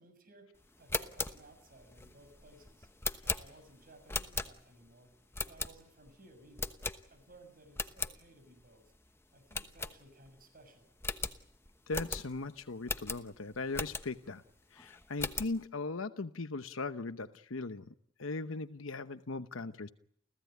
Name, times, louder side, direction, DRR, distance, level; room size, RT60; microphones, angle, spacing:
voice 1, 0.0-2.9 3.2-5.1 5.5-6.8 7.1-8.8 9.3-10.9, right 2 dB, 45° right, 7.0 m, -59 dB
sound 1, 0.7-4.9 5.3-6.1 6.6-7.4 7.7-8.2 8.6-8.7 8.9-9.1 9.5-10.4 10.7-10.8 11.0-14.3 14.8-15.6, left 3 dB, 10° left, 1.0 m, -38 dB
voice 2, 11.9-14.4 14.7-17.9 18.2-19.9, left 3 dB, 70° left, 0.9 m, -39 dB
30.0 x 16.0 x 9.3 m
head